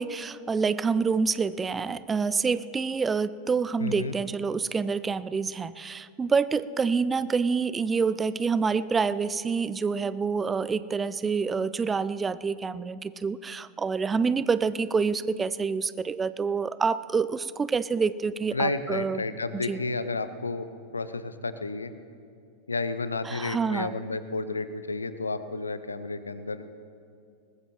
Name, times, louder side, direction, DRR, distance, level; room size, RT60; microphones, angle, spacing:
voice 1, 0.0-19.2 19.5-19.8 23.2-23.9, right 5 dB, 15° right, 16 dB, 0.4 m, -27 dB
voice 2, 3.8-4.1 18.5-21.9 22.7-26.7, left 3 dB, 75° left, 12 dB, 0.7 m, -31 dB
21.5 x 20.0 x 3.0 m, 2.5 s
figure-of-eight pair, 90°, 0 cm